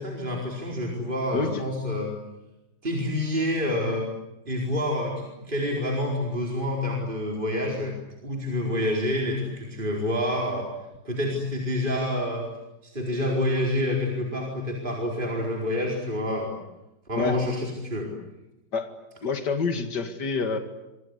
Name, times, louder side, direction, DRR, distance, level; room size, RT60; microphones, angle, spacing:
voice 1, 0.0-2.2 2.8-4.1 4.5-8.0 8.2-10.7 11.0-12.5 12.8-16.6 17.1-18.1, left 1 dB, 30° right, -1 dB, 4.8 m, -28 dB
voice 2, 19.2-20.6, left 4 dB, 75° left, 7 dB, 2.8 m, -27 dB
26.0 x 25.5 x 8.3 m, 0.95 s
omnidirectional pair, 1.8 m